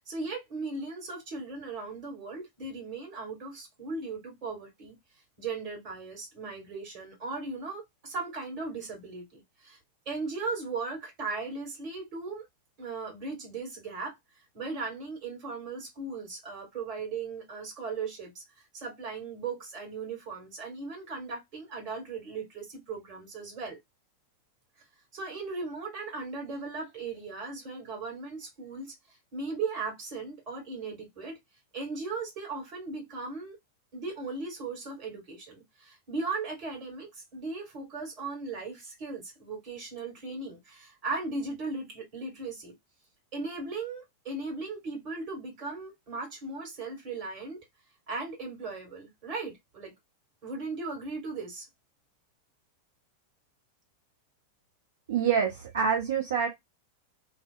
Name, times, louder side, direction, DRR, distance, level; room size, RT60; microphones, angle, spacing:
voice 1, 0.1-5.0 5.4-9.8 10.0-12.5 12.8-14.2 14.5-18.4 18.7-23.8 25.1-28.9 29.3-31.4 31.7-33.6 33.9-42.7 43.3-47.6 48.1-49.9 50.4-51.7, right 3 dB, 40° right, 1.5 m, -37 dB
voice 2, 55.1-56.5, right 7 dB, 60° right, 0.5 m, -26 dB
2.7 x 2.0 x 2.3 m
figure-of-eight pair, 90°, 0 cm